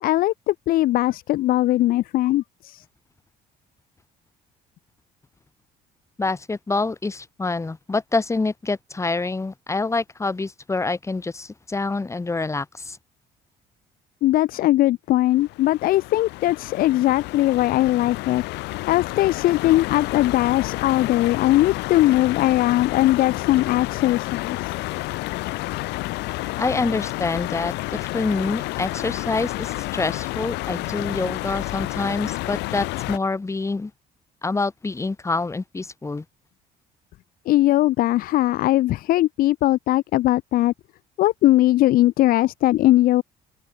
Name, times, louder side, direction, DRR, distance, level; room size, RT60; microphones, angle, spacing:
voice 1, 0.0-2.8 14.2-18.4 18.9-24.7 37.5-40.7 41.2-43.2, left 15 dB, 60° left, 0.4 m, -20 dB
voice 2, 6.2-13.0 26.6-33.9 34.4-36.2, left 3 dB, 15° left, 1.7 m, -26 dB
sound 1, 15.2-33.2, left 21 dB, 90° left, 3.0 m, -30 dB
open air
cardioid pair, 110°, 17 cm